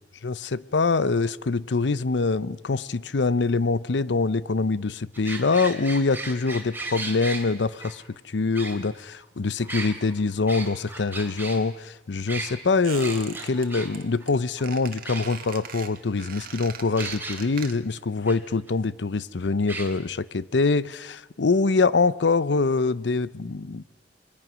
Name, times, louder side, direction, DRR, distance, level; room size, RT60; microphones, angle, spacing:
voice 1, 0.7-23.8, left 3 dB, 75° left, 0.7 m, -24 dB
sound 1, 5.1-7.4 7.8-7.9 8.5-9.2 9.6-11.6 12.3-12.5 13.0-13.9 14.2-14.3 14.6-14.7 15.0-15.7 17.0-17.4 18.3-18.4 18.7-18.8 19.7-19.9, right 3 dB, 10° right, 3.3 m, -35 dB
Squeak, 12.8-13.7 13.9-14.3 14.6-18.0 18.3-18.4, right 7 dB, 55° right, 1.8 m, -40 dB
27.5 x 22.0 x 6.2 m
head